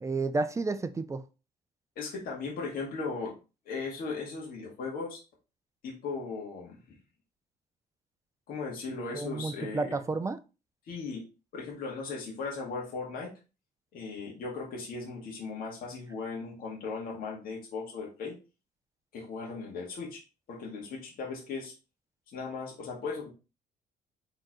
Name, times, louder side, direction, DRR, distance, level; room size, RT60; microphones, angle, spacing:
voice 1, 0.0-1.2 9.1-10.4, right 3 dB, 20° right, 11 dB, 0.4 m, -31 dB
voice 2, 2.0-3.3 3.7-5.2 5.8-7.0 8.5-10.0 10.9-11.2 11.5-13.3 13.9-18.4 19.1-20.2 20.5-21.7 22.3-23.3, left 4 dB, 60° left, -3 dB, 1.9 m, -37 dB
4.4 x 3.8 x 3.0 m, 0.30 s
cardioid pair, 110°, 17 cm